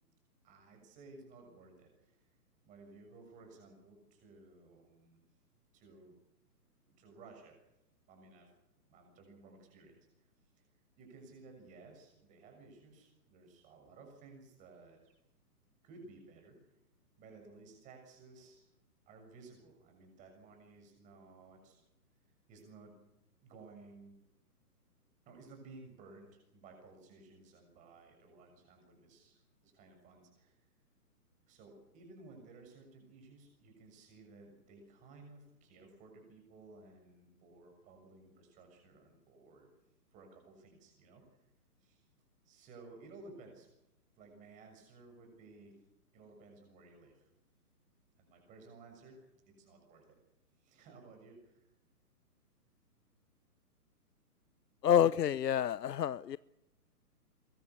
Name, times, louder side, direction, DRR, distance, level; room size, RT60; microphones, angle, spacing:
voice 1, 0.4-2.3 2.6-5.2 5.7-6.2 7.0-7.6 8.1-8.5 8.9-10.3 10.6-10.7 11.0-15.1 15.8-16.7 17.2-18.7 19.1-21.8 22.5-23.0 23.4-24.1 25.2-30.6 31.5-39.7 40.1-41.4 41.8-42.1 42.4-43.7 44.2-45.7 46.1-47.3 48.2-49.2 49.4-50.2 50.6-51.7, right 3 dB, 15° right, 6.7 m, -57 dB
voice 2, 54.8-56.4, left 10 dB, 85° left, 0.8 m, -28 dB
23.5 x 22.0 x 6.9 m
hypercardioid pair, 165°, 48 cm